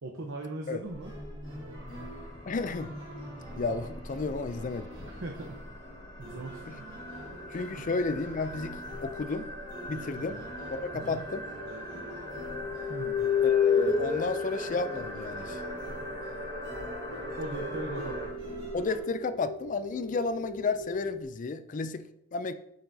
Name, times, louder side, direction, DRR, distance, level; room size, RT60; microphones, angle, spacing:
voice 1, 0.0-1.1 4.3-4.4 5.0-5.6 6.2-6.6 7.7-7.9 10.2-10.3 10.9-11.2 12.9-13.2 17.4-18.2, right 2 dB, 75° right, 1 dB, 0.9 m, -39 dB
sound 1, 0.8-19.0, right 1 dB, 25° right, 2.5 m, -45 dB
sound 2, 1.7-18.3, equal, 25° left, 2.0 m, -42 dB
voice 2, 2.5-2.9 3.5-5.1 6.7-6.8 7.5-9.5 9.9-10.4 10.7-11.5 11.9-12.1 13.4-15.6 18.7-22.5, left 3 dB, 40° left, 12 dB, 0.4 m, -32 dB
sound 3, 8.6-9.3 10.8-10.9 12.3-15.9 16.8-21.2, left 6 dB, 65° left, 2.3 m, -32 dB
9.4 x 6.8 x 2.7 m, 0.79 s
head